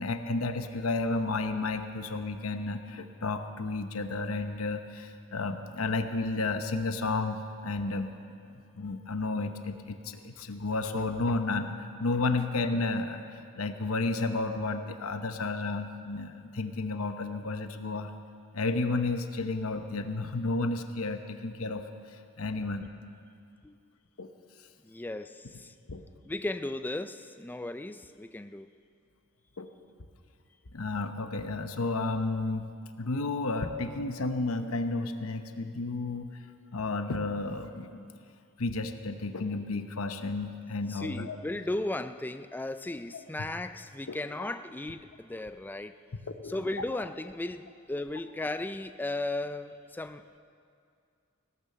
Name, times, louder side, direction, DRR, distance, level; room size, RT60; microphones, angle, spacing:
voice 1, 0.0-7.4 7.6-8.1 8.5-13.2 13.5-18.1 18.5-21.8 22.1-22.9 24.2-24.3 25.9-26.0 29.6-29.7 30.7-32.7 33.0-36.3 36.7-38.1 38.6-41.4 44.1-44.2 46.1-46.5, left 3 dB, 90° left, 7 dB, 0.9 m, -32 dB
voice 2, 24.8-25.7 26.2-28.7 40.9-46.0 46.4-50.4, left 2 dB, 10° left, 10 dB, 0.3 m, -36 dB
17.5 x 12.5 x 6.7 m, 2.4 s
head